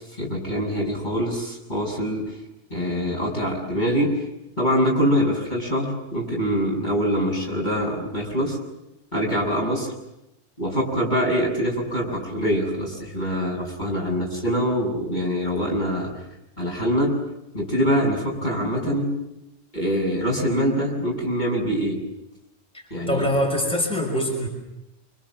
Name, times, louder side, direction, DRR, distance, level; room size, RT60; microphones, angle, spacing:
voice 1, 0.2-2.4 2.7-4.2 4.6-8.6 9.1-9.9 10.6-16.1 16.6-17.1 17.5-19.1 19.7-22.0 22.9-23.3, equal, 40° left, -1 dB, 7.5 m, -24 dB
voice 2, 22.7-24.5, equal, 5° left, 0 dB, 5.7 m, -24 dB
29.0 x 26.0 x 7.5 m, 0.87 s
omnidirectional pair, 1.2 m